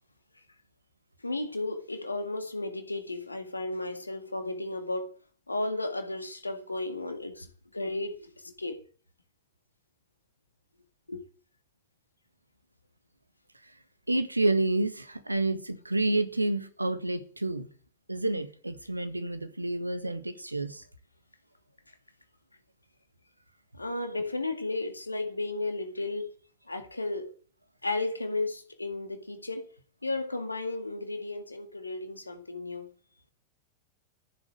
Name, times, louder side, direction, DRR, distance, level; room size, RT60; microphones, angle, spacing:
voice 1, 1.2-5.1 5.5-8.8 11.1-11.2 23.7-26.3 26.7-27.3 27.8-29.7 30.0-32.9, left 2 dB, 80° left, 2.1 m, -34 dB
voice 2, 14.1-17.7 18.1-20.8, right 2 dB, 85° right, 1.5 m, -29 dB
14.5 x 7.6 x 9.0 m
figure-of-eight pair, 90°, 0 cm